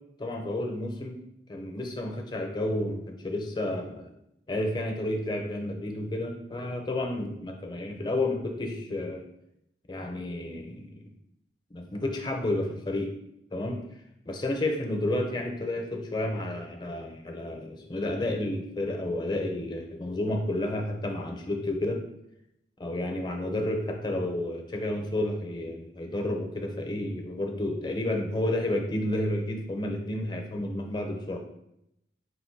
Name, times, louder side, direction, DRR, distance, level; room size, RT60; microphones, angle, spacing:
voice 1, 0.2-1.2 1.5-4.1 4.5-9.2 9.9-11.0 11.7-13.1 13.5-13.8 14.3-22.0 22.8-31.4, left 1 dB, 25° left, 3 dB, 0.5 m, -31 dB
4.0 x 2.5 x 4.4 m, 0.79 s
head